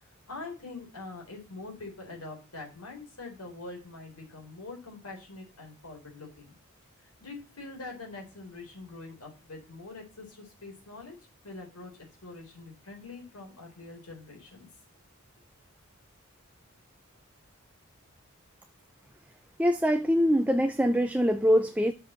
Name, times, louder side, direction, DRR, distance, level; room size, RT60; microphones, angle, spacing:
voice 1, 0.3-6.4 7.0-11.2 11.4-11.9 12.2-14.7, left 3 dB, 85° left, 3.9 m, -44 dB
voice 2, 19.6-21.9, equal, 5° right, 0.4 m, -23 dB
6.9 x 5.4 x 7.3 m
head